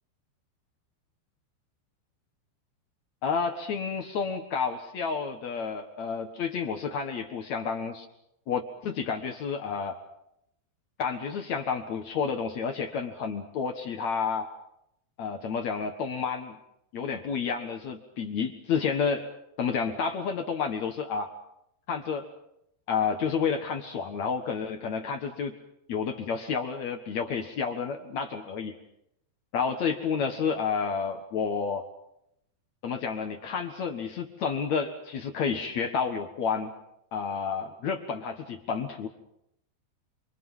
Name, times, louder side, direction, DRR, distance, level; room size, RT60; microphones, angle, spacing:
voice 1, 3.2-8.1 8.5-10.0 11.0-14.5 15.2-16.6 16.9-19.3 19.6-21.3 21.9-22.3 22.9-25.5 25.9-28.8 29.5-31.9 32.8-36.7 37.1-39.1, left 6 dB, 70° left, 5 dB, 1.7 m, -30 dB
27.5 x 25.5 x 5.6 m, 0.78 s
omnidirectional pair, 5.5 m